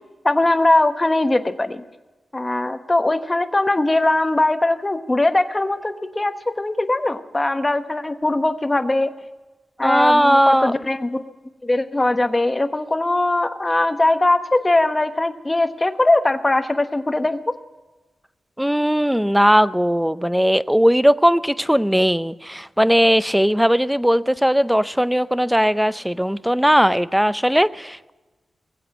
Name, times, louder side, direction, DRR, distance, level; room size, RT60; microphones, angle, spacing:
voice 1, 0.2-1.8 2.3-9.1 9.8-11.3 11.6-17.4, left 2 dB, 20° left, 8 dB, 1.1 m, -20 dB
voice 2, 9.8-10.7 18.6-28.1, equal, 5° right, 15 dB, 0.5 m, -18 dB
20.5 x 8.0 x 7.6 m, 1.2 s
wide cardioid pair, 95°, 0 cm